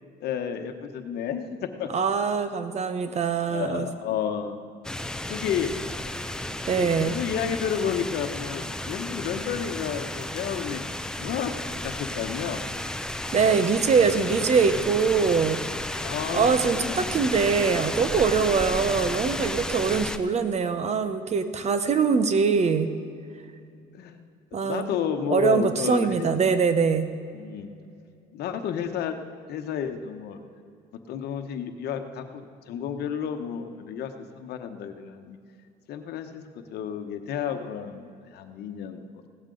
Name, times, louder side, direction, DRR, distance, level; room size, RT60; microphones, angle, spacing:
voice 1, 0.2-1.9 3.5-4.6 5.3-5.7 6.7-10.8 11.2-11.5 11.8-12.6 16.0-17.1 23.9-26.3 27.3-27.7 28.3-29.2 29.5-30.4 31.1-35.4 35.9-39.0, left 8 dB, 70° left, 7 dB, 1.1 m, -31 dB
voice 2, 1.9-3.9 6.7-7.1 13.3-15.6 16.3-22.9 24.5-24.9 25.3-27.1, right 5 dB, 40° right, 10 dB, 0.9 m, -23 dB
sound 1, 4.8-20.2, left 1 dB, 5° left, 0.6 m, -33 dB
16.5 x 12.5 x 3.9 m, 2.4 s
cardioid pair, 110°, 17 cm